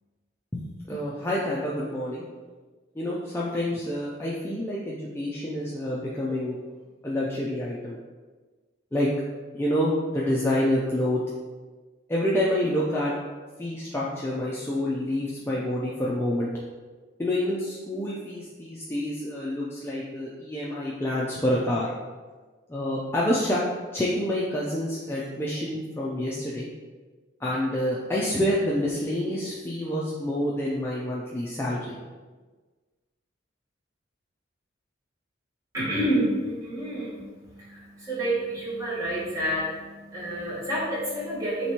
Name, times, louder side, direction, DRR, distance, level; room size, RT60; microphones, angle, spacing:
voice 1, 0.5-2.3 3.0-6.6 7.0-8.0 8.9-9.1 9.5-11.2 12.1-13.1 13.6-16.5 17.2-21.9 22.7-23.6 23.9-26.7 27.4-31.9, left 1 dB, 10° left, -6 dB, 0.4 m, -27 dB
voice 2, 35.7-37.2 37.6-41.7, right 1 dB, 15° right, -8 dB, 1.1 m, -29 dB
3.3 x 3.0 x 4.2 m, 1.3 s
head